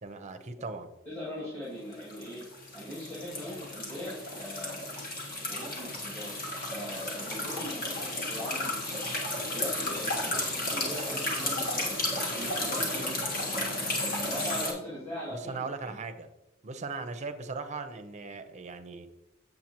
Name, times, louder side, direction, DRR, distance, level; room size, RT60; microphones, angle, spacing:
voice 1, 0.0-0.9 10.3-10.4 15.3-16.3 16.6-19.1, right 4 dB, 35° right, 7 dB, 0.6 m, -38 dB
voice 2, 1.1-4.8 5.5-6.3 6.6-9.2 9.5-11.9 12.3-13.7 14.3-16.1, left 1 dB, 15° left, -8 dB, 2.2 m, -41 dB
sound 1, 1.9-14.7, left 1 dB, 45° left, 1.6 m, -33 dB
7.7 x 7.5 x 2.9 m, 0.92 s
head